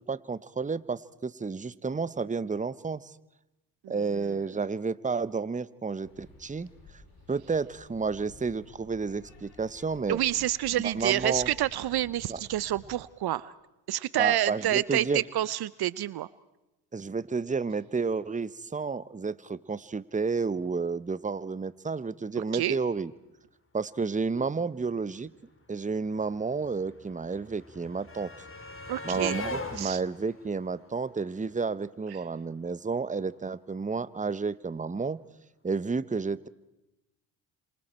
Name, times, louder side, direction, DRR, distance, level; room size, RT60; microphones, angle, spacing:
voice 1, 0.0-3.1 3.9-6.7 7.3-10.2 10.8-11.5 14.2-15.2 16.9-23.1 23.7-25.3 25.7-28.3 29.0-35.2 35.6-36.5, right 4 dB, 20° right, 17 dB, 0.9 m, -31 dB
voice 2, 3.8-4.4 10.1-13.5 13.9-16.3 22.4-22.8 28.9-29.5 29.8-30.0 32.1-32.2, right 13 dB, 60° right, 19 dB, 0.7 m, -29 dB
sound 1, 6.0-12.9, left 3 dB, 80° left, 6.6 m, -53 dB
sound 2, 25.3-25.4 25.5-31.7 32.9-33.0 33.3-33.4, left 3 dB, 30° left, 3.3 m, -42 dB
27.5 x 27.0 x 4.4 m, 0.94 s
supercardioid pair, 55°, 42 cm